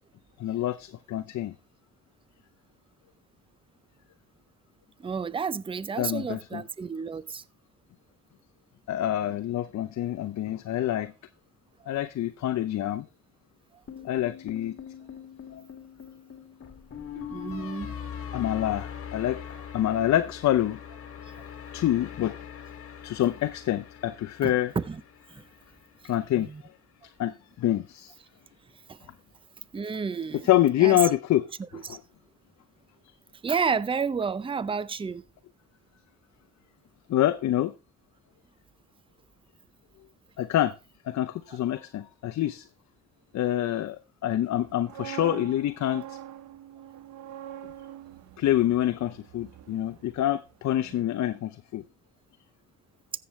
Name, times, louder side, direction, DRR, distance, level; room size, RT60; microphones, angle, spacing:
voice 1, 0.4-1.5 6.0-6.6 8.9-11.1 11.9-13.1 14.0-14.7 15.5-15.6 18.3-19.4 19.7-20.8 21.7-22.4 23.0-24.7 26.0-26.5 27.2-28.1 30.4-31.4 31.9-32.0 37.1-37.7 40.4-40.7 41.1-42.6 43.3-46.2 48.4-51.8, left 13 dB, 65° left, 0.7 m, -26 dB
voice 2, 5.0-7.4 13.7-13.8 17.1-18.0 24.4-25.0 25.3-25.5 26.4-26.6 28.9-29.1 29.7-30.5 30.8-31.0 31.7-32.0 33.4-35.2 41.5-41.6, right 5 dB, 20° right, 0.5 m, -31 dB
sound 1, 13.9-26.1, left 8 dB, 50° left, 2.3 m, -42 dB
sound 2, 44.6-50.5 50.8-51.1, right 11 dB, 75° right, 0.8 m, -44 dB
14.5 x 7.8 x 3.2 m
cardioid pair, 90°, 30 cm